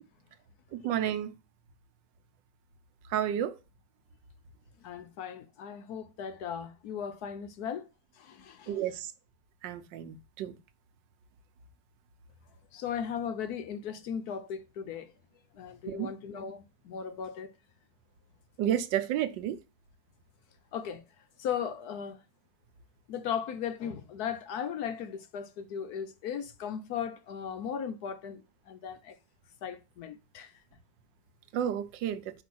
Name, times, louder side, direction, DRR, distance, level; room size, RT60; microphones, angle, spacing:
voice 1, 0.7-1.3 3.1-3.6 8.7-9.1 9.6-10.6 15.9-16.1 18.6-19.6 31.5-32.2, right 10 dB, 85° right, 1.4 m, -31 dB
voice 2, 4.8-7.9 8.2-8.8 12.7-15.1 15.5-17.5 20.7-21.0 21.4-22.2 23.1-29.2 29.6-30.5, left 8 dB, 65° left, 1.1 m, -37 dB
5.1 x 4.9 x 6.0 m
omnidirectional pair, 1.9 m